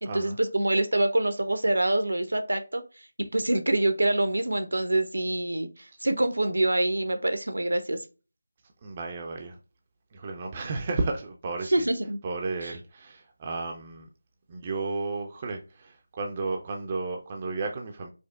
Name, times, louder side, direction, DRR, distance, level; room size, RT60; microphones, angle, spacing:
voice 1, 0.0-3.1 3.3-8.0 11.6-12.2 12.6-12.7, right 1 dB, 65° right, 0.6 m, -26 dB
voice 2, 8.8-9.6 10.1-11.9 12.2-14.1 14.5-18.1, right 3 dB, 25° right, 0.4 m, -33 dB
5.0 x 2.0 x 2.4 m
figure-of-eight pair, 160°, 0 cm